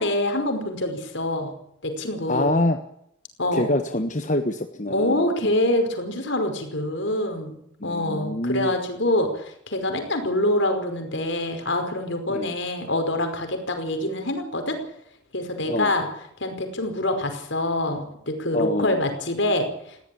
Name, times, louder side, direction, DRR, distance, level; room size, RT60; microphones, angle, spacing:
voice 1, 0.0-1.5 1.8-2.5 3.4-3.7 4.9-14.8 15.3-16.1 16.4-20.0, left 1 dB, 65° left, 6 dB, 5.2 m, -25 dB
voice 2, 2.3-2.8 3.5-5.5 7.8-8.7 12.3-12.5 15.7-15.9 18.5-19.1, left 1 dB, 40° left, 6 dB, 1.4 m, -26 dB
20.0 x 16.5 x 8.6 m, 0.72 s
head